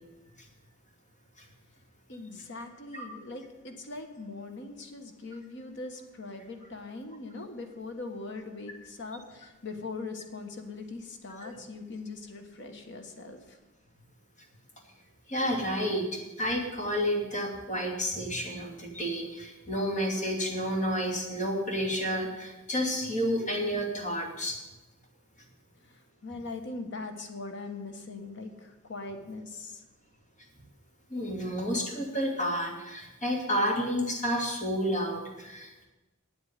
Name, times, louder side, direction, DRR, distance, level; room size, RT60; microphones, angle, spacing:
voice 1, 2.1-13.6 25.9-29.8, left 3 dB, 60° left, 5 dB, 1.4 m, -41 dB
voice 2, 15.3-24.6 31.1-35.9, equal, 40° left, 0 dB, 2.8 m, -30 dB
8.9 x 8.3 x 9.4 m, 1.1 s
head